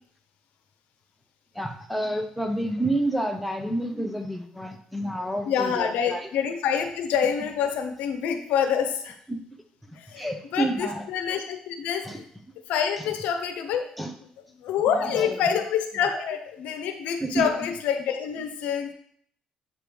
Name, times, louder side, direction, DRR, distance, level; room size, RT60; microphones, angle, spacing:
voice 1, 1.5-6.2 9.3-9.4 10.2-11.0 12.0-12.2 14.0-14.1 14.9-15.6 16.1-16.2 17.2-17.7, right 1 dB, ahead, 3 dB, 0.7 m, -29 dB
voice 2, 5.5-9.1 10.0-12.1 12.7-13.9 14.6-18.9, left 7 dB, 85° left, 6 dB, 0.8 m, -27 dB
7.5 x 3.1 x 5.2 m, 0.63 s
cardioid pair, 125°, 2 cm